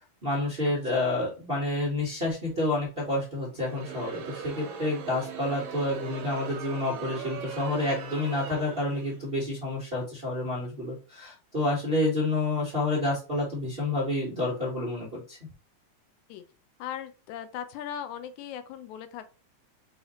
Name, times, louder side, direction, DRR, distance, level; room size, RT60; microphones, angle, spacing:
voice 1, 0.2-15.4, left 2 dB, 50° right, -6 dB, 0.6 m, -29 dB
Crowd, 3.5-9.3, right 6 dB, 75° right, 1.7 m, -40 dB
voice 2, 16.8-19.3, left 9 dB, 80° left, 10 dB, 2.0 m, -38 dB
5.5 x 3.1 x 3.0 m, 0.34 s
omnidirectional pair, 3.4 m